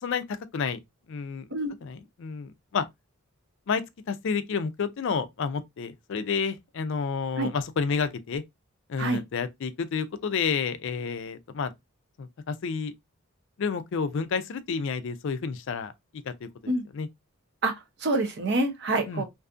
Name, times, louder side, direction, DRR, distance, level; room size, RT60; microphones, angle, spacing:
voice 1, 0.0-0.8 1.1-1.5 1.8-2.8 3.7-8.4 8.9-11.7 12.2-12.9 13.6-15.9 16.3-17.1 19.1-19.2, left 5 dB, 55° left, 0.4 m, -30 dB
voice 2, 17.6-19.3, right 2 dB, 50° right, 0.6 m, -27 dB
2.6 x 2.4 x 2.4 m
head